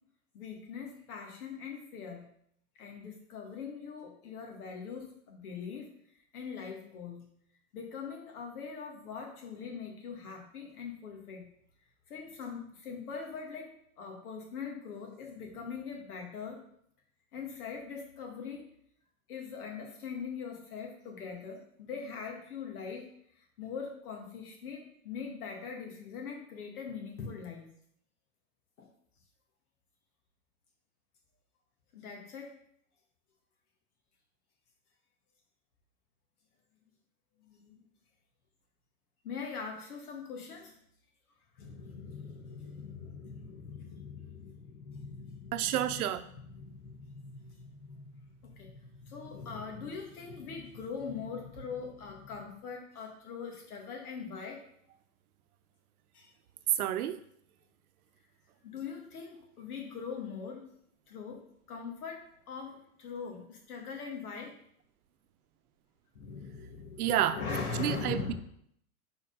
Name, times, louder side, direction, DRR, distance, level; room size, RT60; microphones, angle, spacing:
voice 1, 0.3-2.2 2.8-5.9 6.3-7.2 7.7-11.4 12.1-13.7 14.0-16.6 17.3-18.6 19.3-23.1 23.4-27.7 28.8-28.9 31.9-32.5 37.4-37.8 39.2-40.7 41.6-46.0 46.3-48.0 48.4-54.6 56.1-56.3 58.6-60.7 61.1-61.4 61.7-64.5 66.1-68.3, left 5 dB, 75° left, 1 dB, 2.1 m, -42 dB
voice 2, 45.5-46.2 56.8-57.2 67.0-67.4 67.8-68.3, right 11 dB, 75° right, 11 dB, 0.7 m, -29 dB
4.6 x 4.5 x 5.4 m, 0.68 s
supercardioid pair, 140°, 44 cm